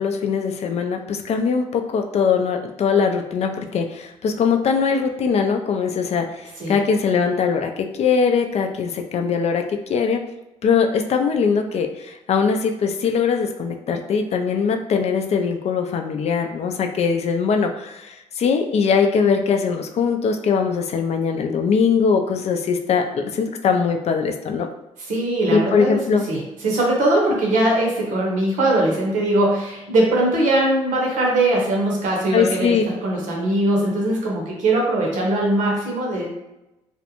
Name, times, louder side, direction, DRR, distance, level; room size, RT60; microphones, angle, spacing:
voice 1, 0.0-10.2 10.6-24.7 25.5-26.2 32.3-32.8, left 6 dB, 55° left, 4 dB, 0.4 m, -21 dB
voice 2, 25.1-36.3, right 1 dB, 75° right, -2 dB, 0.9 m, -21 dB
2.5 x 2.1 x 2.8 m, 0.94 s
supercardioid pair, 65°, 13 cm